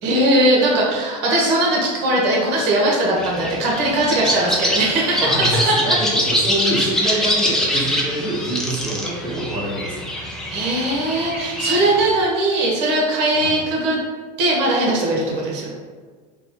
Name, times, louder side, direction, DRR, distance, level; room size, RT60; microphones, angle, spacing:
voice 1, 0.0-5.3 5.7-6.0 7.0-7.2 10.5-14.0 14.4-15.7, right 1 dB, 60° right, -3 dB, 1.1 m, -19 dB
sound 1, 3.2-12.1, equal, ahead, 0.6 m, -24 dB
voice 2, 5.2-9.9 13.3-13.6, right 1 dB, 20° right, -12 dB, 1.3 m, -26 dB
3.7 x 2.2 x 2.9 m, 1.5 s
hypercardioid pair, 95°, 21 cm